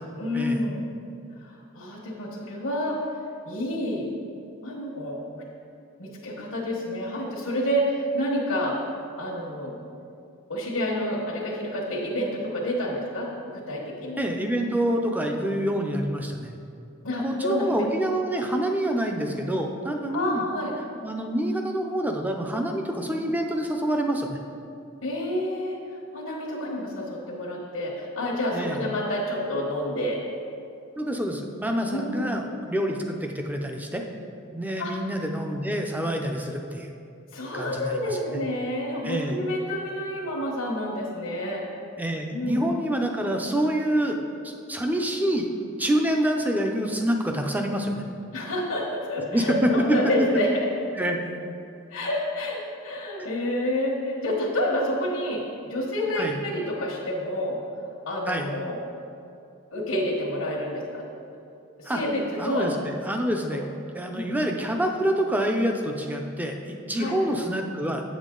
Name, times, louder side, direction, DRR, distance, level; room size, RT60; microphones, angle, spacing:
voice 1, 0.2-0.9 1.4-3.0 3.4-4.1 4.6-5.4 6.0-8.7 9.2-9.7 10.5-13.3 13.5-14.2 17.0-17.7 20.1-20.7 25.0-25.8 26.1-30.2 31.9-32.3 34.8-34.9 37.3-41.6 42.3-42.6 48.3-50.5 51.9-57.6 58.1-58.8 59.7-61.0 61.8-62.7 63.5-63.6 64.1-64.3 67.0-67.2, left 1 dB, 90° left, -5 dB, 1.3 m, -29 dB
voice 2, 14.2-16.5 17.2-20.4 21.0-24.4 28.5-28.8 31.0-34.0 34.5-36.9 37.5-38.4 39.0-39.4 42.0-45.5 45.8-47.9 49.3-50.6 51.0-51.4 53.2-53.3 56.2-56.4 58.3-58.5 61.8-62.0 62.4-63.6 63.9-68.0, right 1 dB, 10° right, 3 dB, 0.5 m, -27 dB
8.2 x 7.2 x 3.8 m, 2.6 s
head